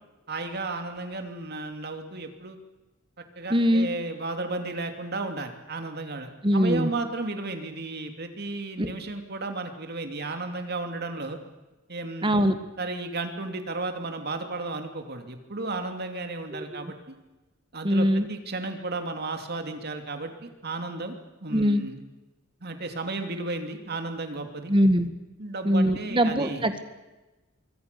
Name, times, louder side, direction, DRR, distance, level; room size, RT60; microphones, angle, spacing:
voice 1, 0.3-2.6 3.4-11.4 11.9-12.3 12.8-17.1 17.7-21.2 21.4-22.0 22.6-24.7 25.4-26.6, right 2 dB, 55° right, 6 dB, 2.8 m, -33 dB
voice 2, 3.5-3.9 6.4-6.9 8.8-8.9 12.2-12.6 16.5-16.9 17.8-18.3 21.5-21.8 24.7-25.1 25.6-26.8, equal, 25° right, 9 dB, 1.8 m, -22 dB
26.0 x 23.5 x 7.0 m, 1.1 s
head